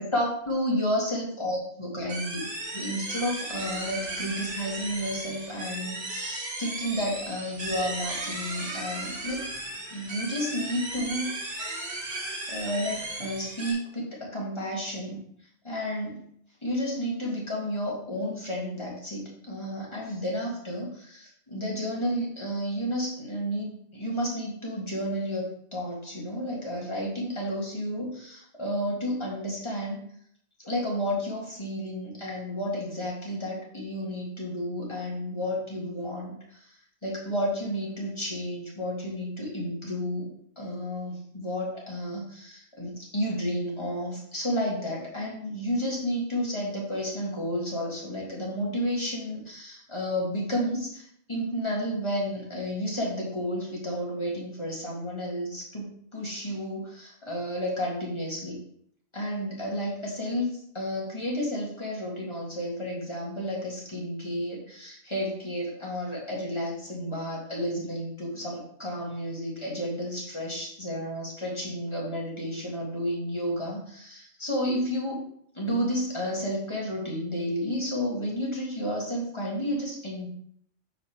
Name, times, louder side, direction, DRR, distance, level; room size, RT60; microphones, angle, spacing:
voice 1, 0.1-2.4 2.7-9.5 9.9-11.3 12.5-15.2 15.6-16.3 16.6-30.0 30.6-36.7 37.0-40.3 40.6-58.6 59.1-75.3 75.5-80.3, equal, 25° left, -3 dB, 1.9 m, -31 dB
sound 1, 2.1-13.7, right 2 dB, 65° right, 1.6 m, -35 dB
5.0 x 4.0 x 5.8 m, 0.67 s
omnidirectional pair, 1.2 m